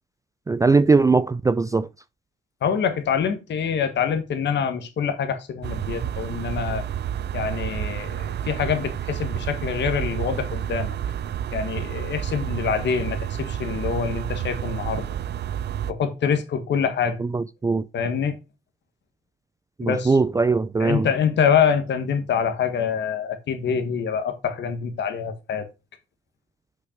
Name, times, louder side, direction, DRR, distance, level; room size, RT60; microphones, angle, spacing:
voice 1, 0.5-1.9 17.3-17.8 19.8-21.1, right 4 dB, 15° right, 0.4 m, -20 dB
voice 2, 2.6-6.8 7.3-8.2 8.5-10.9 11.5-15.1 15.9-17.2 17.9-18.4 19.8-20.2 20.8-25.7, left 7 dB, 65° left, 1.5 m, -25 dB
sound 1, 5.6-15.9, right 10 dB, 55° right, 0.6 m, -30 dB
6.4 x 5.9 x 5.1 m
cardioid pair, 90°, 20 cm